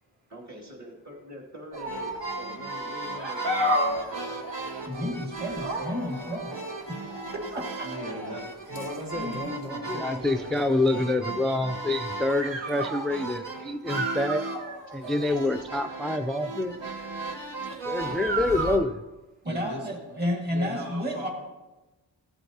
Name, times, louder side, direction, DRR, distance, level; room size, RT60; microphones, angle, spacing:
voice 1, 0.3-4.3 7.4-7.7 14.4-14.5 15.4-15.5, equal, 35° right, -3 dB, 2.4 m, -45 dB
sound 1, 1.7-18.8, right 1 dB, 70° right, 1.7 m, -33 dB
voice 2, 4.9-6.6 7.3-7.4 7.8-7.9 9.1-9.4 19.5-21.3, left 1 dB, 20° right, 0 dB, 1.8 m, -31 dB
voice 3, 7.8-8.6 19.4-19.9 20.5-21.3, right 1 dB, 85° right, -2 dB, 1.8 m, -39 dB
voice 4, 8.7-11.7 13.5-13.6 17.2-17.7, equal, 50° right, -4 dB, 4.0 m, -39 dB
voice 5, 9.9-14.4 14.9-16.8 17.9-19.0, left 2 dB, ahead, 7 dB, 0.4 m, -27 dB
15.5 x 7.9 x 2.8 m, 1.1 s
cardioid pair, 55°, 46 cm